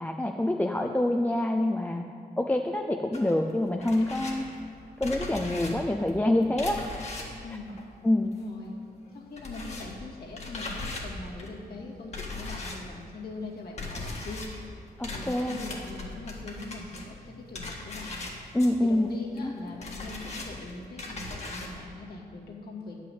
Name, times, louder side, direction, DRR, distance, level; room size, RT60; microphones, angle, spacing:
voice 1, 0.0-2.0 2.4-4.4 5.0-6.8 8.0-8.3 15.0-15.6 18.5-19.1 19.4-19.5, left 1 dB, 10° left, 3 dB, 0.4 m, -26 dB
sound 1, 3.1-8.7 8.9-21.8, left 2 dB, 40° left, 1.7 m, -40 dB
voice 2, 7.4-7.8 8.4-8.7 9.1-14.5 15.1-18.3 18.8-22.9, left 3 dB, 65° left, -4 dB, 2.2 m, -41 dB
10.0 x 5.7 x 8.0 m, 2.3 s
wide cardioid pair, 130°, 17 cm